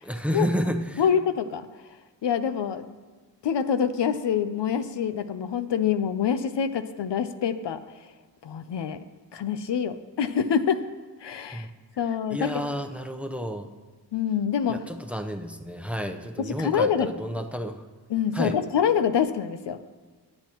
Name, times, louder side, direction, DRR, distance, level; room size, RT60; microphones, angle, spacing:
voice 1, 0.0-1.0 11.5-11.7 12.3-13.7 14.7-17.9 18.3-18.6, equal, 5° right, 6 dB, 0.8 m, -30 dB
voice 2, 1.0-1.7 2.2-2.8 3.4-7.8 8.4-9.0 9.3-10.8 11.2-11.7 12.0-12.6 14.1-14.8 16.4-17.1 18.1-19.8, left 8 dB, 80° left, 11 dB, 0.7 m, -26 dB
20.0 x 8.7 x 3.0 m, 1.3 s
cardioid pair, 70°, 42 cm